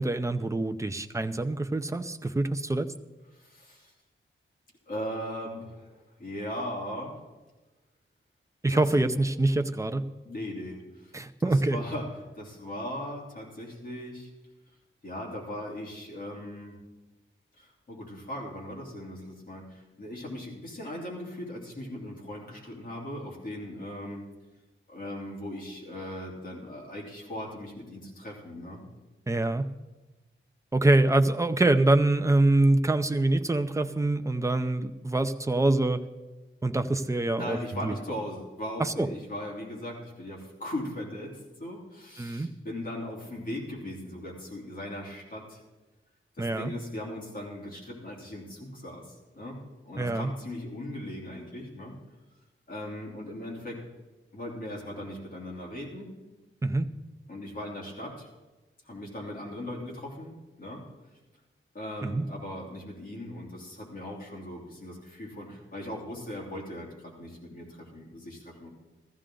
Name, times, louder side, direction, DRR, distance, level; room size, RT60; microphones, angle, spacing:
voice 1, 0.0-2.9 8.6-10.0 11.1-11.8 29.3-29.6 30.7-36.0 36.6-37.6 37.8-37.9 38.8-39.1 42.2-42.5 46.4-46.7 50.0-50.3 56.6-56.9 62.0-62.3, right 2 dB, 15° right, 8 dB, 0.6 m, -25 dB
voice 2, 3.3-3.9 4.9-7.2 8.7-8.8 10.2-11.2 11.4-14.3 15.0-16.8 17.6-24.3 24.9-28.8 37.3-45.6 46.4-49.6 49.8-51.9 52.7-53.8 54.3-56.1 57.3-58.3 58.8-60.9 61.7-68.7, left 1 dB, 40° left, -3 dB, 3.1 m, -39 dB
15.0 x 15.0 x 3.8 m, 1.2 s
wide cardioid pair, 150°, 21 cm